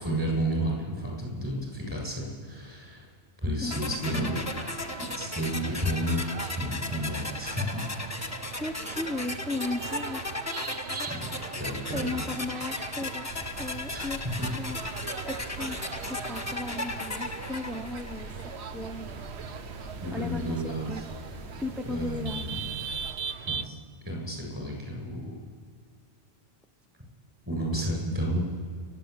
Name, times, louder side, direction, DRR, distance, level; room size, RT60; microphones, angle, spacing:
voice 1, 0.0-3.1 3.4-4.4 5.1-6.2 6.6-7.8 11.1-11.2 11.5-12.2 13.9-14.5 20.0-20.9 21.9-22.5 23.5-23.7 24.0-25.3 27.5-28.4, equal, 20° right, -1 dB, 7.9 m, -31 dB
voice 2, 3.6-4.3 8.6-10.5 11.9-13.3 13.6-14.2 14.6-14.8 15.2-19.1 20.1-21.0 21.6-22.4, left 2 dB, ahead, 6 dB, 0.4 m, -36 dB
sound 1, 3.7-18.6, left 2 dB, 15° left, 1.1 m, -36 dB
sound 2, 3.8-23.7, right 7 dB, 85° right, 1.1 m, -40 dB
sound 3, 13.3-23.1, left 1 dB, 45° right, 7.2 m, -46 dB
30.0 x 10.5 x 8.7 m, 2.1 s
omnidirectional pair, 1.1 m